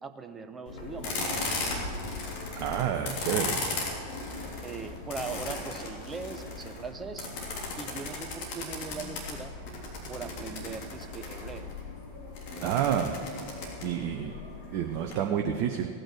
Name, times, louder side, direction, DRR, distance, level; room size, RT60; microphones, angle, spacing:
voice 1, 0.0-1.5 4.6-7.3 7.8-9.5 10.1-11.7, right 4 dB, 15° right, 9 dB, 0.9 m, -40 dB
sound 1, 0.7-15.1, left 3 dB, 45° left, 3.3 m, -37 dB
voice 2, 2.5-3.6 12.6-13.2 13.8-14.3 14.7-15.9, right 9 dB, 40° right, 4 dB, 0.8 m, -29 dB
17.0 x 9.0 x 6.4 m, 2.6 s
figure-of-eight pair, 90°, 0 cm